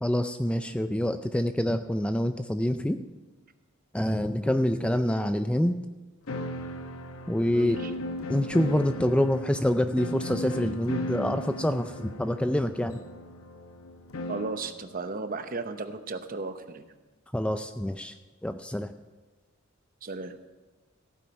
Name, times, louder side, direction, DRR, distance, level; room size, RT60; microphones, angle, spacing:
voice 1, 0.0-3.0 3.9-5.7 7.3-7.8 8.3-13.0 17.3-18.1 18.4-18.9, left 1 dB, 5° left, 9 dB, 0.4 m, -26 dB
sound 1, 6.3-14.7, left 1 dB, 85° left, 0.9 m, -37 dB
voice 2, 7.5-7.9 14.3-16.9 20.0-20.3, right 3 dB, 45° right, 9 dB, 0.8 m, -35 dB
15.0 x 9.1 x 5.3 m, 1.3 s
head